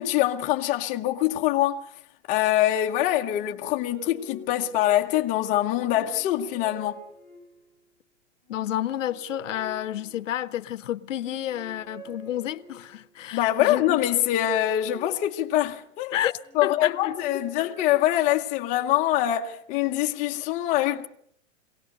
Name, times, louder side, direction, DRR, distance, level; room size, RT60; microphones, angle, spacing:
voice 1, 0.0-1.8 2.3-7.0 13.3-16.1 16.5-21.1, left 13 dB, 20° left, 0.9 m, -24 dB
sound 1, 3.2-5.3 5.8-7.8 8.5-10.6 11.1-13.1 13.8-15.9 16.4-18.4, right 1 dB, 80° right, 5.2 m, -47 dB
voice 2, 8.5-14.0 16.1-17.2, left 12 dB, 75° left, 1.0 m, -30 dB
23.5 x 18.0 x 6.7 m
supercardioid pair, 165°, 38 cm